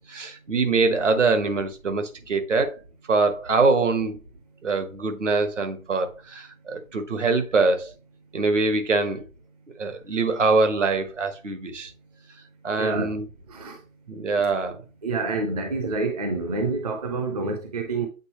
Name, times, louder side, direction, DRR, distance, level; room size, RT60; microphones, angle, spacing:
voice 1, 0.1-2.8 3.1-4.2 4.6-7.9 8.3-9.2 9.8-11.9 12.6-13.3 14.1-14.8, right 3 dB, 60° right, 1.3 m, -23 dB
voice 2, 12.8-13.1 13.5-13.8 15.0-18.1, right 3 dB, 30° right, 0.7 m, -27 dB
8.2 x 3.9 x 3.0 m
figure-of-eight pair, 140°, 42 cm